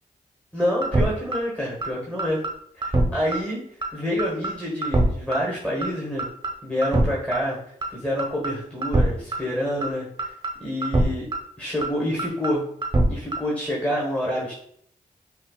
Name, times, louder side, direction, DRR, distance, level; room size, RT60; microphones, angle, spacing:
voice 1, 0.5-2.4 2.7-3.6 3.9-6.3 6.6-7.6 7.9-10.3 10.6-11.3 11.6-12.6 13.1-14.5, equal, 10° left, -5 dB, 1.3 m, -27 dB
sound 1, 0.8-1.1 1.3-1.4 1.8-1.9 2.2-2.5 2.8-3.1 3.3-3.4 3.8-3.9 4.2-4.5 4.8-5.0 5.3-5.4 5.8-5.9 6.2-6.5 6.8-7.1 7.3-7.4 7.8-7.9 8.2-8.5 8.8-9.1 9.3-9.4 9.8-9.9 10.2-10.5 10.8-11.1 11.3-11.4 11.8-11.9 12.2-12.5 12.8-13.0 13.3-13.4, right 2 dB, 30° right, 0.8 m, -22 dB
5.3 x 2.4 x 2.4 m, 0.67 s
cardioid pair, 45°, 16 cm